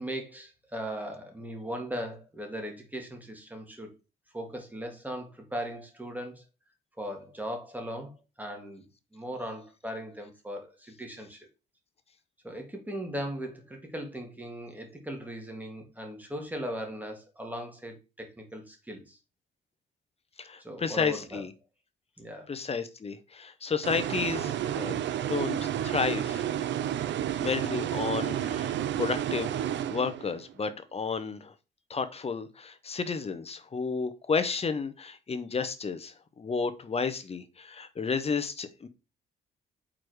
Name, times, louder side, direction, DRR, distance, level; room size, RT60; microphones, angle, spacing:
voice 1, 0.0-3.9 4.3-6.4 7.0-8.9 9.1-11.5 12.4-19.2 20.6-21.4 22.2-22.5, equal, 10° right, 2.1 m, -38 dB
voice 2, 20.4-21.5 22.5-25.6 25.8-26.5 27.4-29.6 29.9-31.5 31.9-38.9, left 5 dB, 30° left, 1.0 m, -32 dB
sound 1, 23.8-30.5, right 11 dB, 65° right, 0.6 m, -31 dB
4.9 x 4.1 x 4.6 m
cardioid pair, 90°, 20 cm